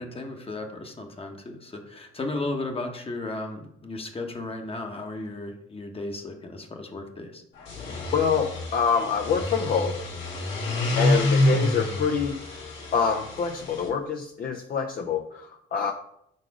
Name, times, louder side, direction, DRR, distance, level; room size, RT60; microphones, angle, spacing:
voice 1, 0.0-7.4 10.9-11.1 11.5-11.6, left 2 dB, 30° left, 4 dB, 1.0 m, -35 dB
sound 1, 7.6-13.9, left 1 dB, 70° left, 1.8 m, -27 dB
voice 2, 8.1-9.9 11.0-12.4 12.9-15.9, left 6 dB, 45° left, 3 dB, 0.5 m, -26 dB
4.8 x 4.1 x 4.7 m, 0.75 s
cardioid pair, 90°, 20 cm